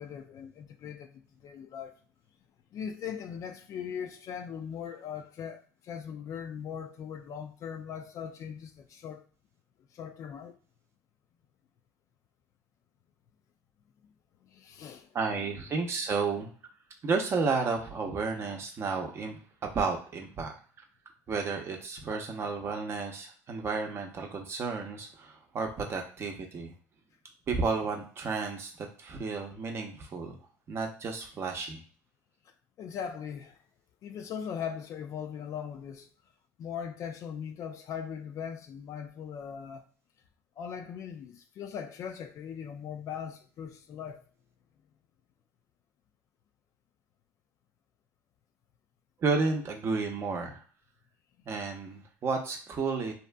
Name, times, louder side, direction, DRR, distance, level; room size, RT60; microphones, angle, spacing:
voice 1, 0.0-1.9 2.7-5.6 5.9-9.2 10.0-10.6 14.5-15.5 32.8-33.5 34.0-36.1 36.6-39.8 40.6-44.2, left 8 dB, 50° left, 0.4 m, -40 dB
voice 2, 15.1-16.5 17.0-20.5 21.3-26.7 27.5-30.4 30.7-31.8 49.2-50.6 51.5-53.1, right 4 dB, 40° right, 0.6 m, -32 dB
2.7 x 2.5 x 2.2 m
supercardioid pair, 100°, 7 cm